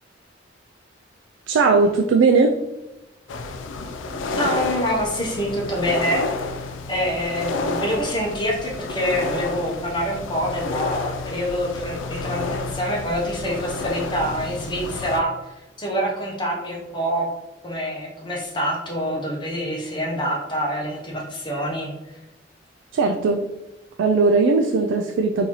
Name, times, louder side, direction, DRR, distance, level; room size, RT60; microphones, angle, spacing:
voice 1, 1.5-2.6 22.9-23.4 24.0-25.5, right 4 dB, 80° right, 3 dB, 0.3 m, -18 dB
sound 1, 3.3-15.2, left 3 dB, 85° left, 0.4 m, -30 dB
voice 2, 4.4-6.2 6.9-15.5 15.8-17.3 17.6-21.9, equal, 25° left, -2 dB, 0.8 m, -26 dB
3.9 x 2.7 x 3.0 m, 1.0 s
head